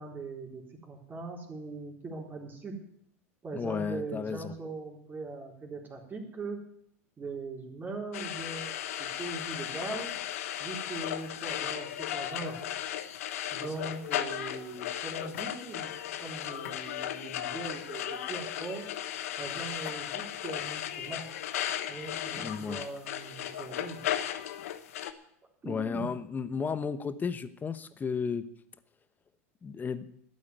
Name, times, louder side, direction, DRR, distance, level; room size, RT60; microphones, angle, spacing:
voice 1, 0.0-2.8 3.4-6.6 7.2-8.7 9.0-10.1 10.6-12.6 13.5-18.8 19.4-21.3 21.9-24.1 25.6-26.1, right 3 dB, 25° right, 1 dB, 3.9 m, -40 dB
voice 2, 3.5-4.5 22.3-22.8 25.6-28.4 29.6-30.1, left 6 dB, 20° left, 13 dB, 1.1 m, -33 dB
sound 1, 8.1-25.1, left 11 dB, 75° left, 1.1 m, -36 dB
12.5 x 8.6 x 9.5 m, 0.71 s
hypercardioid pair, 90°, 8 cm